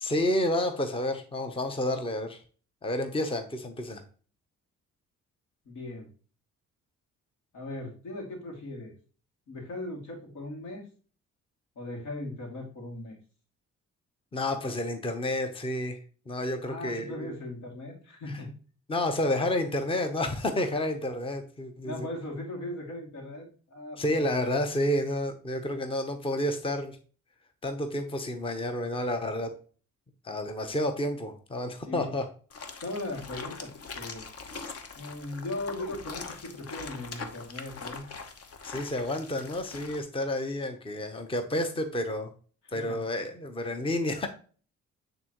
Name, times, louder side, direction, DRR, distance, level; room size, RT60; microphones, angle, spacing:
voice 1, 0.0-2.4 2.8-4.0 14.3-17.3 18.9-22.1 24.0-27.0 27.6-29.5 30.2-32.3 38.6-42.3 42.7-44.3, left 1 dB, 20° left, 7 dB, 0.9 m, -30 dB
voice 2, 5.6-6.1 7.5-8.9 9.5-10.9 11.8-13.1 16.6-18.5 21.8-24.3 31.8-32.1 32.8-33.7 34.0-34.2 34.9-38.1 42.6-43.0, left 1 dB, 80° left, 0 dB, 2.6 m, -38 dB
sound 1, 32.5-40.0, left 4 dB, 50° left, 1.0 m, -42 dB
8.6 x 3.8 x 3.0 m, 0.39 s
cardioid pair, 90°, 30 cm